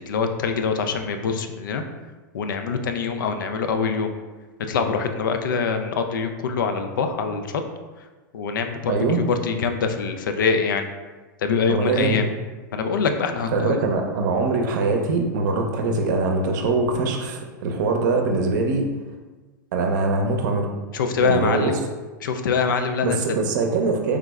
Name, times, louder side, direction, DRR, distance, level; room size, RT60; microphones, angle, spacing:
voice 1, 0.1-1.8 2.3-4.1 4.7-7.6 8.3-8.9 9.3-10.9 11.4-12.2 12.7-13.8 20.9-21.8 22.2-23.2, left 5 dB, 90° left, 6 dB, 0.4 m, -24 dB
voice 2, 8.9-9.2 11.7-12.2 13.5-18.9 19.7-20.7 21.2-21.7 23.0-24.2, right 3 dB, 70° right, 3 dB, 0.6 m, -22 dB
3.4 x 2.0 x 3.4 m, 1.3 s
hypercardioid pair, 120°, 10 cm